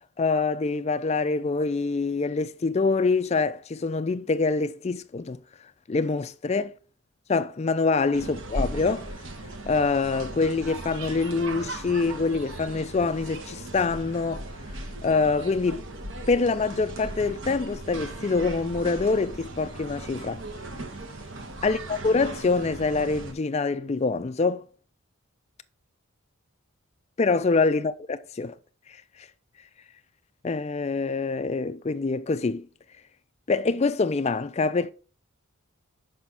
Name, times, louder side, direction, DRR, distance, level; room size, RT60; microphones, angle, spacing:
voice 1, 0.2-5.4 5.9-6.7 7.3-9.1 9.7-14.4 15.0-15.8 16.3-20.4 21.6-24.7 27.2-28.5 30.4-32.7 33.5-34.9, left 4 dB, 30° left, 0.3 m, -25 dB
sound 1, 8.1-23.3, right 1 dB, 55° right, 1.1 m, -37 dB
5.6 x 4.1 x 5.8 m
head